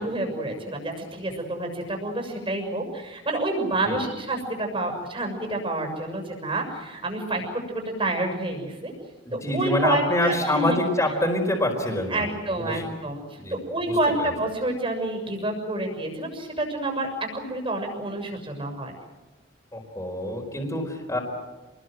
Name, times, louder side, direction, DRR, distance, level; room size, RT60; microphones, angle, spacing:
voice 1, 0.0-8.9 9.3-10.8 12.1-18.9, right 1 dB, 25° right, 3 dB, 6.8 m, -28 dB
voice 2, 9.2-12.3 12.7-12.8 13.4-13.6 13.9-14.3 19.7-21.2, left 1 dB, 15° left, -1 dB, 4.5 m, -26 dB
29.0 x 21.0 x 7.8 m, 1.2 s
head